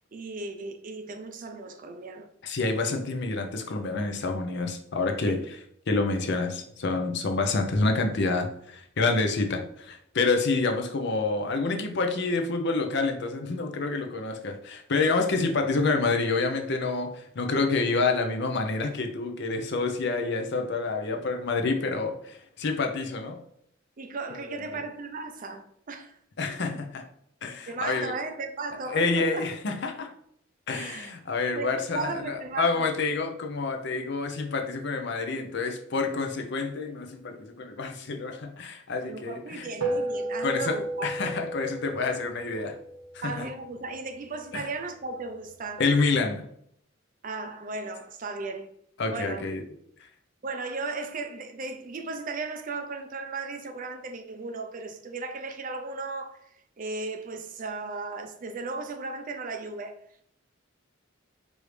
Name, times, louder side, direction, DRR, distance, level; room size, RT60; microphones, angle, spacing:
voice 1, 0.1-2.3 5.2-5.5 24.0-26.2 26.7-26.8 27.7-29.5 30.7-31.1 31.5-32.9 39.1-41.1 43.2-45.8 47.2-48.7 49.1-49.4 50.4-60.0, right 3 dB, 40° right, 0.5 m, -36 dB
voice 2, 2.4-5.6 5.9-23.4 24.3-24.8 26.4-27.0 27.4-28.1 28.9-30.1 30.7-39.7 40.4-42.8 43.1-43.5 44.5-44.7 45.8-46.4 49.0-49.6, left 3 dB, 55° left, 0.6 m, -28 dB
sound 1, 39.8-44.5, right 1 dB, 80° right, 1.1 m, -34 dB
4.8 x 2.7 x 3.2 m
head